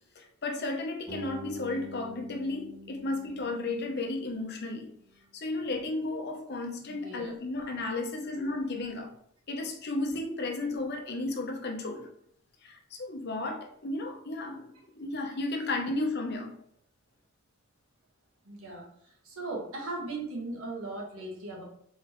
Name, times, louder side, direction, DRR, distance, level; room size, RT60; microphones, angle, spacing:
voice 1, 0.2-4.9 5.3-9.1 9.5-12.1 12.6-16.5, left 2 dB, 50° left, 3 dB, 0.8 m, -33 dB
Bass guitar, 1.1-5.2, right 1 dB, ahead, 1.9 m, -46 dB
voice 2, 6.9-7.3 18.4-21.6, right 2 dB, 75° right, -2 dB, 1.6 m, -38 dB
4.4 x 3.9 x 3.0 m, 0.67 s
head